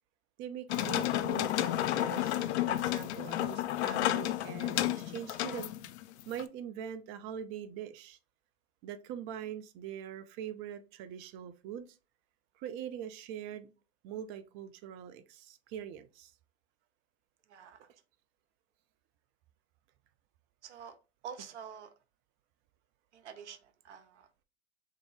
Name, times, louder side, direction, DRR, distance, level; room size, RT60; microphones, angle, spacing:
voice 1, 0.4-5.7 6.3-8.2 8.8-12.0 12.6-13.7 14.0-16.3, right 9 dB, 35° right, 11 dB, 0.4 m, -43 dB
sound 1, 0.7-6.4, left 13 dB, 70° left, 0.5 m, -31 dB
voice 2, 17.5-17.9 20.6-21.0 21.2-21.9 23.1-24.4, right 7 dB, 80° right, 9 dB, 0.7 m, -47 dB
3.7 x 2.7 x 3.1 m, 0.31 s
hypercardioid pair, 95°, 34 cm